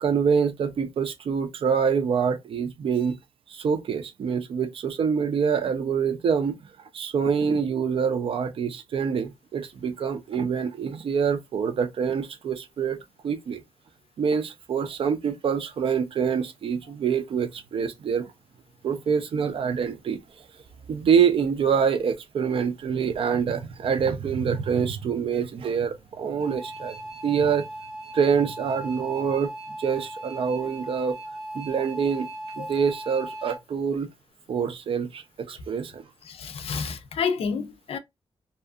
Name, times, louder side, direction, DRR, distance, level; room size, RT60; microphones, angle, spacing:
voice 1, 0.0-3.2 3.5-6.6 6.9-13.0 13.2-13.6 14.2-18.3 18.8-20.2 20.9-26.9 27.2-27.7 28.1-29.5 29.8-31.2 31.5-32.3 32.6-34.1 34.5-36.0, right 6 dB, 60° right, 0.5 m, -25 dB
sound 1, 26.4-33.6, right 1 dB, 5° right, 0.8 m, -38 dB
voice 2, 36.2-38.0, left 6 dB, 70° left, 0.5 m, -29 dB
2.7 x 2.4 x 2.4 m
wide cardioid pair, 170°, 10 cm